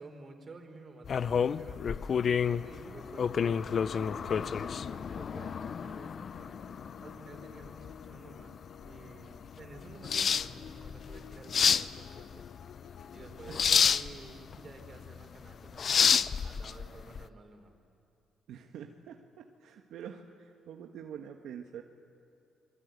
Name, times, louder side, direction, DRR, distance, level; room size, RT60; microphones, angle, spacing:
voice 1, 0.0-2.0 2.4-6.6 6.8-12.8 13.1-17.7, right 3 dB, 40° right, 4 dB, 4.6 m, -51 dB
sound 1, 1.0-17.2, left 7 dB, 50° left, 0.6 m, -30 dB
sound 2, 6.3-13.7, left 8 dB, 85° left, 1.0 m, -53 dB
voice 2, 18.5-21.8, right 8 dB, 80° right, 4 dB, 1.4 m, -46 dB
27.0 x 22.0 x 9.5 m, 2.5 s
cardioid pair, 90°, 0 cm